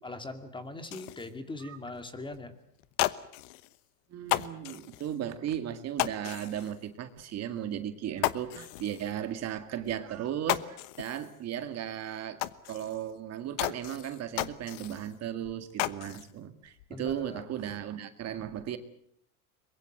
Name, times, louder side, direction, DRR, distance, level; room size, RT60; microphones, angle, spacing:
voice 1, 0.0-2.5 16.9-17.4, left 2 dB, 10° left, 8 dB, 2.3 m, -41 dB
sound 1, 0.8-1.3 1.9-2.0 2.3-2.4 2.8-3.8 4.2-5.1 6.0-6.8 7.2-7.3 7.7-7.8 8.2-9.1 9.9-10.0 10.3-11.3 11.7-11.8 12.4-13.1 13.6-15.1 15.4-16.3 16.7-17.3, left 18 dB, 70° left, 1.1 m, -34 dB
voice 2, 4.1-12.4 12.7-18.8, right 10 dB, 40° right, 9 dB, 2.0 m, -36 dB
23.5 x 22.0 x 7.8 m, 0.68 s
supercardioid pair, 125°, 39 cm